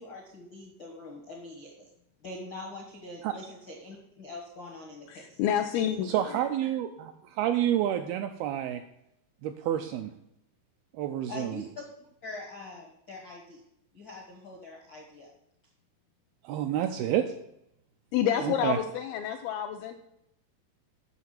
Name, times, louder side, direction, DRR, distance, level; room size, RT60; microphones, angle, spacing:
voice 1, 0.0-1.9 2.2-5.4 11.3-11.8 12.2-13.6 13.9-15.3 18.3-18.4, left 2 dB, 65° left, -2 dB, 1.1 m, -43 dB
voice 2, 5.1-6.1 18.1-19.9, left 9 dB, 85° left, 4 dB, 2.2 m, -28 dB
voice 3, 6.1-8.8 9.4-10.1 10.9-11.6 16.4-17.3 18.4-18.8, right 11 dB, 85° right, 7 dB, 2.2 m, -29 dB
8.3 x 6.4 x 7.5 m, 0.79 s
omnidirectional pair, 4.9 m